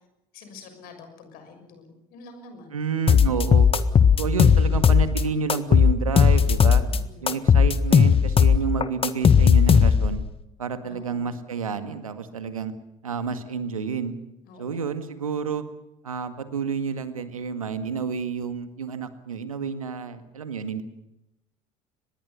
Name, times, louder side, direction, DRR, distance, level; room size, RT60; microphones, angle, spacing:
voice 1, 0.3-2.8 6.9-7.4 10.8-11.3 14.5-14.9, left 4 dB, 60° left, 7 dB, 6.4 m, -46 dB
voice 2, 2.7-3.7 4.2-6.8 7.2-10.2 10.6-12.7 13.0-14.1 14.6-15.6 16.0-20.8, right 6 dB, 85° right, 11 dB, 1.9 m, -29 dB
sound 1, 3.1-5.2 5.5-7.0 7.3-10.2, left 7 dB, 30° left, 1.6 m, -17 dB
25.5 x 20.5 x 7.0 m, 0.88 s
figure-of-eight pair, 65°, 17 cm